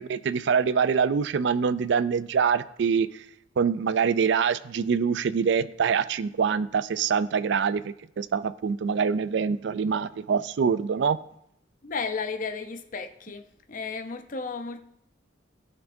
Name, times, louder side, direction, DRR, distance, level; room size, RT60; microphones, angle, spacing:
voice 1, 0.0-3.1 3.6-11.2, right 6 dB, 65° right, 0.4 m, -25 dB
voice 2, 11.8-13.4 13.7-14.8, left 4 dB, 45° left, 0.6 m, -33 dB
17.0 x 5.9 x 2.6 m
head